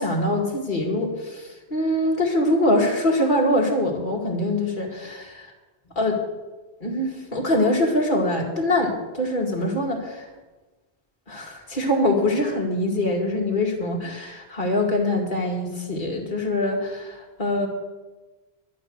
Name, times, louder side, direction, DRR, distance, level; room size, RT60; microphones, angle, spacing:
voice 1, 0.0-5.5 6.0-6.2 6.8-10.3 11.3-17.7, left 1 dB, 50° left, -1 dB, 2.3 m, -23 dB
11.5 x 9.1 x 6.3 m, 1.2 s
omnidirectional pair, 1.1 m